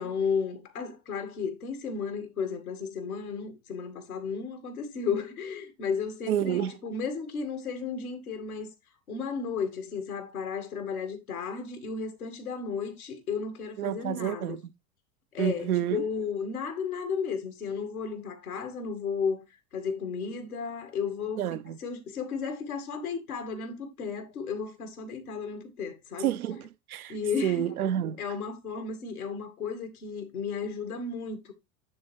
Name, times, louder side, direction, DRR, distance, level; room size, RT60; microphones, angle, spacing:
voice 1, 0.0-8.7 9.1-14.6 15.3-19.4 19.7-26.4 27.1-27.7 28.2-31.5, left 5 dB, 90° left, 2.2 m, -34 dB
voice 2, 6.3-6.8 13.8-14.6 15.4-16.0 21.4-21.8 26.2-27.1 27.4-28.2, right 11 dB, 90° right, 0.7 m, -29 dB
10.0 x 3.6 x 4.5 m
hypercardioid pair, 95°, 43 cm